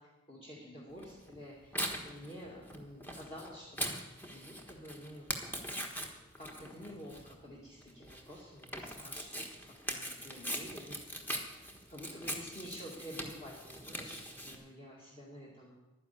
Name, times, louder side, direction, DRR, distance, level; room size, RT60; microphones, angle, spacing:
voice 1, 0.0-3.8 4.2-5.3 6.4-9.4 9.7-11.0 11.9-15.8, equal, 25° left, -5 dB, 2.2 m, -49 dB
Tearing, 1.0-14.5, equal, 10° left, 1.3 m, -42 dB
11.5 x 10.0 x 8.4 m, 1.1 s
head